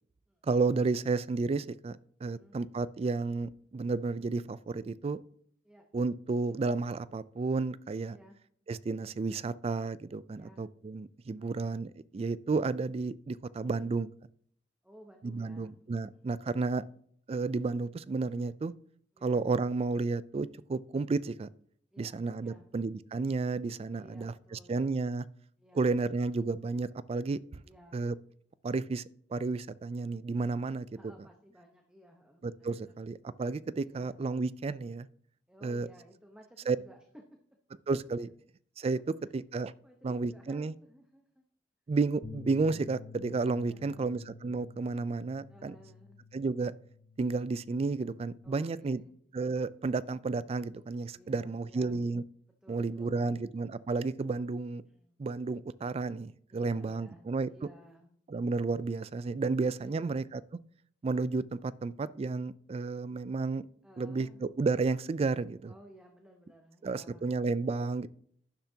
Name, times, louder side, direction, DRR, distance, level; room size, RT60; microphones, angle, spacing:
voice 1, 0.4-5.2 5.9-8.2 8.7-14.1 15.2-16.8 17.3-18.7 19.2-21.5 22.0-25.2 25.7-27.6 27.9-28.1 28.6-29.0 29.3-30.9 32.4-35.1 35.6-35.9 36.7-36.8 37.9-38.3 38.8-39.7 40.0-40.7 41.9-45.8 46.3-46.7 47.2-49.0 49.3-52.2 52.7-54.8 55.2-57.5 58.3-60.4 61.0-63.6 64.0-65.7 66.8-68.1, right 3 dB, 35° right, 0.3 m, -32 dB
voice 2, 2.2-2.6 5.6-5.9 8.1-8.4 10.3-10.6 11.4-11.8 13.7-13.9 14.8-16.9 19.1-19.3 21.9-22.7 23.9-24.9 25.6-26.3 27.6-28.1 30.9-33.0 33.8-34.2 35.5-37.0 39.2-41.4 43.7-44.1 45.5-46.2 48.4-49.2 51.1-52.1 52.6-53.5 54.9-55.2 56.5-58.1 59.7-60.2 63.8-64.5 65.7-67.4, equal, 5° right, 0.9 m, -57 dB
Bass guitar, 42.2-48.5, left 4 dB, 50° left, 0.7 m, -51 dB
11.5 x 10.5 x 2.8 m
head